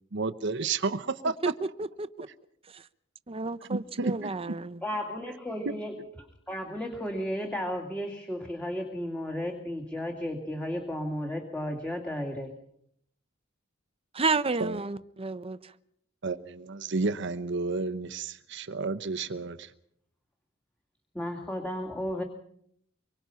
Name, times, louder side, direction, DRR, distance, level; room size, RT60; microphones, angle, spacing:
voice 1, 0.1-1.5 3.7-4.5 5.7-5.8 14.6-14.8 16.2-19.7, right 3 dB, 60° right, 10 dB, 0.9 m, -31 dB
voice 2, 1.8-2.3 2.7-2.8 3.3-4.8 14.1-15.7, right 3 dB, 30° right, 13 dB, 0.8 m, -31 dB
voice 3, 4.8-12.5 21.1-22.2, equal, 5° left, 2 dB, 2.4 m, -34 dB
25.0 x 23.5 x 5.7 m, 0.71 s
head